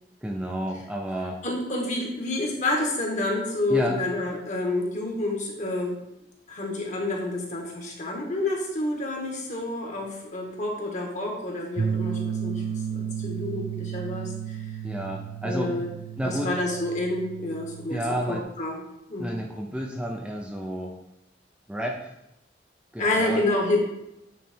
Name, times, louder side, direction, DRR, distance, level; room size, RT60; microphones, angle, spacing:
voice 1, 0.2-1.4 3.7-4.0 14.8-15.8 16.2-16.5 17.9-18.5 19.2-21.0 21.7-22.2 22.9-23.4, equal, 5° right, 0 dB, 0.5 m, -31 dB
voice 2, 1.4-6.0 6.5-12.6 12.9-14.6 15.4-15.9 16.2-18.0 18.3-18.8 19.1-19.3 23.0-23.8, left 2 dB, 40° left, 0 dB, 1.5 m, -28 dB
sound 1, 11.8-18.4, right 7 dB, 70° right, 0.5 m, -33 dB
9.1 x 3.2 x 4.4 m, 0.85 s
head